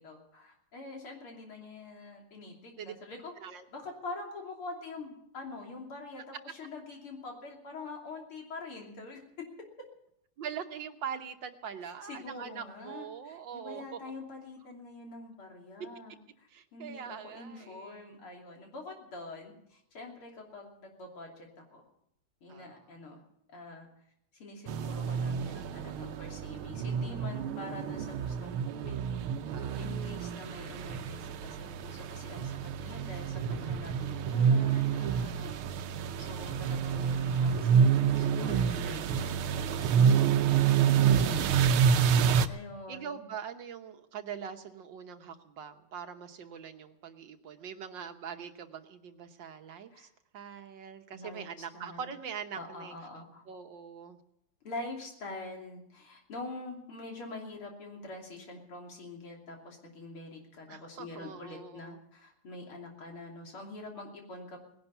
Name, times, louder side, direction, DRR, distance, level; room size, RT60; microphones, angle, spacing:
voice 1, 0.0-3.3 3.7-9.2 11.8-21.8 22.4-23.2 23.5-23.9 24.3-29.3 29.8-32.5 32.8-35.5 36.2-40.1 41.2-41.8 42.5-43.2 49.9-50.1 51.1-51.4 51.7-52.1 52.5-53.4 54.6-64.6, left 2 dB, 85° left, 1 dB, 3.9 m, -45 dB
voice 2, 10.4-14.0 16.5-18.2 22.5-22.8 29.5-29.9 33.8-34.9 35.6-36.3 40.1-40.8 42.9-50.1 50.3-52.9 53.5-54.2 60.7-62.0, right 7 dB, 65° right, 7 dB, 1.6 m, -43 dB
sound 1, 24.7-42.5, right 7 dB, 80° right, 1.6 m, -28 dB
18.5 x 11.0 x 7.0 m, 0.74 s
omnidirectional pair, 2.3 m